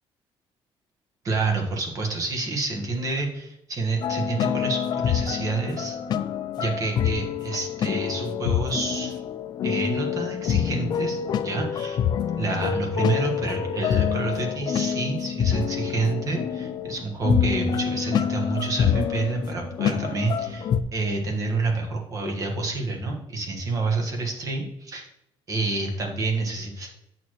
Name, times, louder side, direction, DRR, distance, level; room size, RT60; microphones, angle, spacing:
voice 1, 1.2-6.0 6.6-9.2 9.6-12.0 12.4-25.1 25.5-26.9, right 3 dB, 35° right, 2 dB, 1.4 m, -28 dB
sound 1, 4.0-20.8, left 8 dB, 45° left, 0.4 m, -26 dB
8.0 x 6.7 x 3.1 m, 0.84 s
cardioid pair, 165°, 10 cm